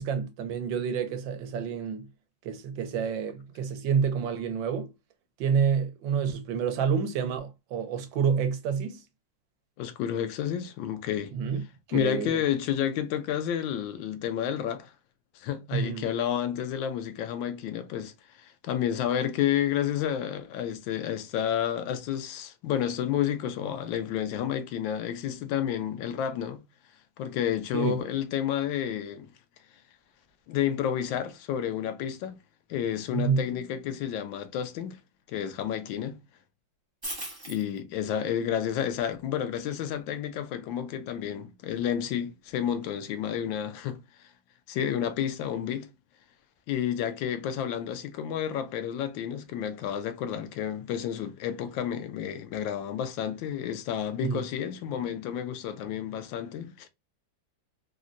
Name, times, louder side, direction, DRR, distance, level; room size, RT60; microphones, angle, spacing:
voice 1, 0.0-2.1 2.4-4.9 5.4-9.0 11.3-11.6 11.9-12.4 15.7-16.0 27.7-28.0 33.1-33.4 54.2-54.4, right 6 dB, 80° right, 1.4 m, -28 dB
voice 2, 9.8-11.3 11.9-14.9 15.4-26.6 27.2-29.3 30.5-32.4 32.7-35.0 35.3-36.2 37.5-44.3 44.7-45.9 46.7-56.9, left 9 dB, 80° left, 1.3 m, -30 dB
sound 1, 37.0-37.8 39.1-39.2 42.5-42.6, right 1 dB, 25° right, 0.4 m, -37 dB
3.8 x 2.1 x 2.4 m
omnidirectional pair, 2.1 m